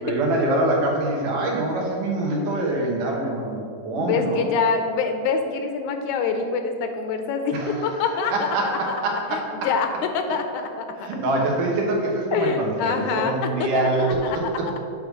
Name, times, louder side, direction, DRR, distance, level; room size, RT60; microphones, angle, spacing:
voice 1, 0.0-4.5 7.5-7.8 8.3-9.4 11.0-14.1, right 2 dB, 85° right, -1 dB, 2.8 m, -24 dB
voice 2, 3.9-10.9 12.3-14.5, left 5 dB, 80° left, 6 dB, 2.0 m, -26 dB
8.7 x 3.6 x 6.2 m, 2.5 s
omnidirectional pair, 3.6 m